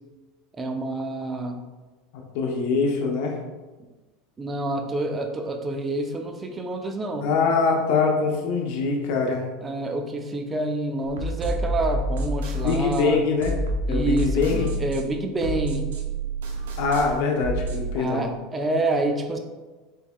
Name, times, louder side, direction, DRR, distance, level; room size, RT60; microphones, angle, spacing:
voice 1, 0.6-1.6 4.4-7.3 9.6-13.2 13.9-15.9 17.9-19.4, right 2 dB, 20° right, 5 dB, 0.5 m, -28 dB
voice 2, 2.1-3.4 7.2-9.5 12.6-13.5 13.9-14.7 16.8-18.3, left 4 dB, 70° left, 1 dB, 0.8 m, -23 dB
sound 1, 11.0-17.9, right 1 dB, 80° right, 0.6 m, -28 dB
4.6 x 4.0 x 2.2 m, 1.2 s
hypercardioid pair, 100°, 0 cm